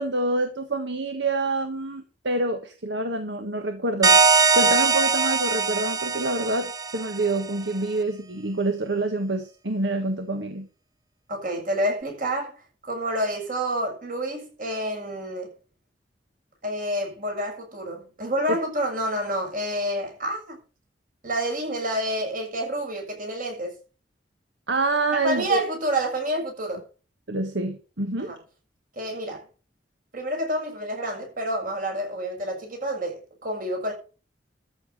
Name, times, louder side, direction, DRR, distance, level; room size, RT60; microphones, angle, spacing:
voice 1, 0.0-4.2 4.5-10.7 18.5-18.6 24.7-25.6 27.3-28.3, right 2 dB, 70° right, 1.6 m, -27 dB
sound 1, 4.0-7.4, right 4 dB, 20° right, 0.6 m, -21 dB
voice 2, 11.3-15.6 16.6-20.6 21.2-23.7 25.2-26.8 28.2-28.4 29.0-29.5 30.1-33.9, right 1 dB, 50° right, 7.0 m, -28 dB
13.5 x 7.1 x 6.7 m
head